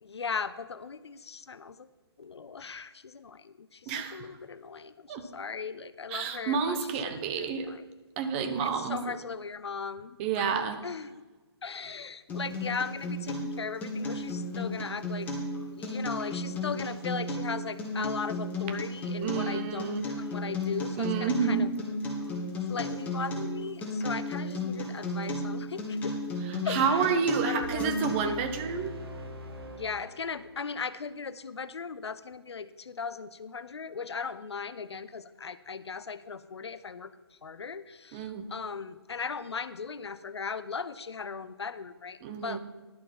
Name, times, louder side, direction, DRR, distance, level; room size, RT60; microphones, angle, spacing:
voice 1, 0.0-1.9 2.2-6.9 7.3-7.8 8.6-11.3 11.6-15.3 15.7-21.7 22.7-26.2 26.6-28.5 29.7-37.1 37.4-42.6, left 5 dB, 75° left, 15 dB, 0.6 m, -38 dB
voice 2, 3.9-4.3 5.1-5.2 6.1-7.7 8.2-9.0 10.2-10.8 19.2-20.1 21.0-21.7 26.5-28.9 38.1-38.5 42.2-42.6, right 6 dB, 25° right, 8 dB, 0.9 m, -29 dB
Acoustic guitar, 12.3-28.3, left 1 dB, 10° left, 1.8 m, -34 dB
sound 1, 27.6-30.7, equal, 60° right, 1.8 m, -43 dB
11.5 x 6.7 x 5.4 m, 1.2 s
figure-of-eight pair, 140°, 14 cm